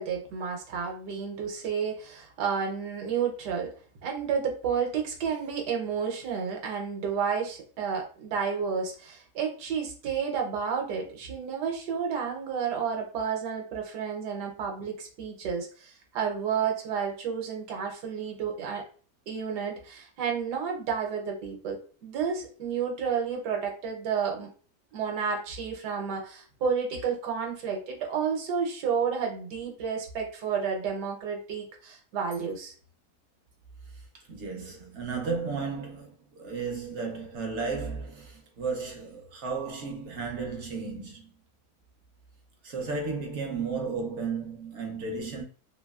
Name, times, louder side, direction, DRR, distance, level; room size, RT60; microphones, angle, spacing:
voice 1, 0.0-3.7 4.0-18.8 19.3-24.5 24.9-32.7, right 6 dB, 80° right, 1.3 m, -31 dB
voice 2, 33.9-41.3 42.6-45.4, right 4 dB, 60° right, 0.8 m, -34 dB
3.0 x 2.6 x 2.3 m
omnidirectional pair, 1.8 m